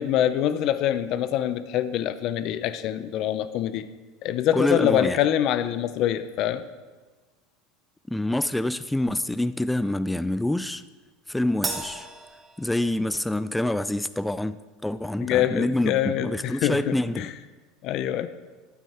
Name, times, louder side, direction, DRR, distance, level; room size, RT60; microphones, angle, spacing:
voice 1, 0.0-3.8 4.2-6.6 15.2-17.3 17.8-18.3, left 11 dB, 55° left, 12 dB, 0.6 m, -25 dB
voice 2, 4.5-5.2 8.1-10.8 11.3-12.1 12.6-17.2, left 1 dB, 5° left, 14 dB, 0.3 m, -26 dB
Crash cymbal, 11.6-13.3, right 3 dB, 20° right, 1.4 m, -34 dB
12.5 x 8.6 x 4.4 m, 1.3 s
supercardioid pair, 105°, 0 cm